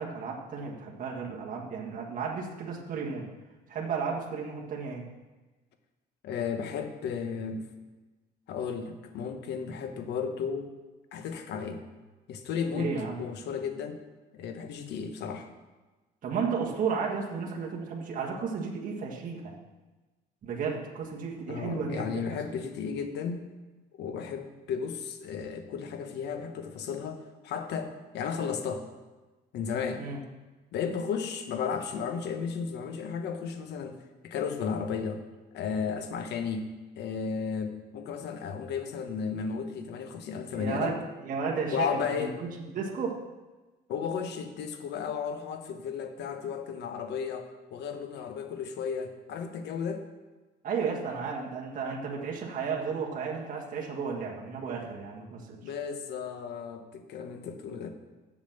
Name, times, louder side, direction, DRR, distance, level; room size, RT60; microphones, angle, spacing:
voice 1, 0.0-3.3 3.7-5.1 12.7-13.2 16.2-19.5 20.4-22.2 30.0-30.2 40.5-43.2 50.6-55.6, right 5 dB, 50° right, -2 dB, 1.6 m, -33 dB
voice 2, 6.2-7.7 8.5-10.7 11.1-11.8 12.3-12.9 13.2-14.0 14.3-15.5 21.5-23.4 23.9-28.9 29.5-30.0 30.7-34.0 34.2-35.2 35.5-41.0 41.7-42.3 43.9-50.0 55.6-57.9, left 6 dB, 75° left, 7 dB, 1.1 m, -34 dB
7.4 x 7.1 x 6.8 m, 1.2 s
cardioid pair, 115°, 18 cm